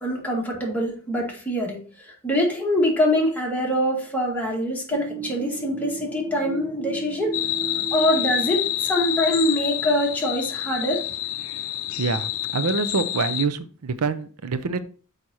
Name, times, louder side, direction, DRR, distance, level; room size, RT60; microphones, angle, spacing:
voice 1, 0.0-7.3 7.9-11.2, equal, 10° left, -3 dB, 1.9 m, -24 dB
sound 1, 4.9-9.3, right 4 dB, 20° right, 0.8 m, -35 dB
sound 2, 7.3-13.4, left 13 dB, 70° left, 0.5 m, -28 dB
voice 2, 11.9-14.8, right 4 dB, 90° right, 11 dB, 0.6 m, -26 dB
6.2 x 5.0 x 4.2 m, 0.40 s
head